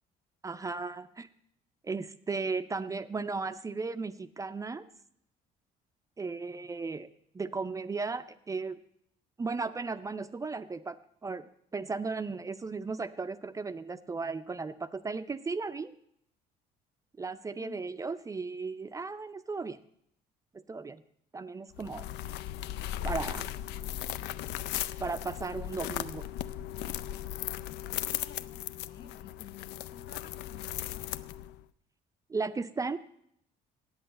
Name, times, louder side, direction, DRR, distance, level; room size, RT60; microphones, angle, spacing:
voice 1, 0.4-1.3 1.8-4.8 6.2-7.1 7.3-8.8 9.4-11.0 11.2-15.9 17.2-19.8 20.5-21.0 21.3-22.1 23.0-23.5 25.0-26.3 32.3-33.0, right 4 dB, 20° right, 12 dB, 0.4 m, -35 dB
sound 1, 21.7-31.6, left 12 dB, 85° left, 0.4 m, -37 dB
voice 2, 27.8-31.2, left 7 dB, 65° left, 10 dB, 0.9 m, -52 dB
8.4 x 8.0 x 7.6 m, 0.71 s
cardioid pair, 110°, 17 cm